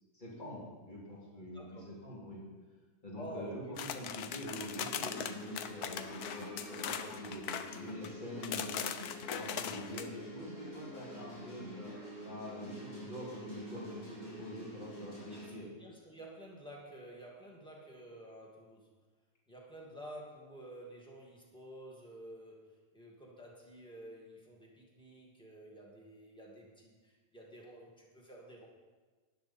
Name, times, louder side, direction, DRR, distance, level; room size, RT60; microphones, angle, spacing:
voice 1, 0.1-2.4 3.0-7.5 7.8-8.8 9.3-11.9 12.2-15.7, left 1 dB, 30° left, -5 dB, 3.2 m, -45 dB
voice 2, 1.4-1.9 3.2-3.8 7.2-7.6 15.3-18.9 19.5-28.7, right 1 dB, 5° left, -2 dB, 2.1 m, -51 dB
sound 1, 3.8-8.1 8.4-10.1, left 8 dB, 70° left, 1.2 m, -40 dB
sound 2, 4.6-15.5, equal, 90° left, 5.3 m, -47 dB
12.5 x 10.5 x 4.3 m, 1.3 s
omnidirectional pair, 1.8 m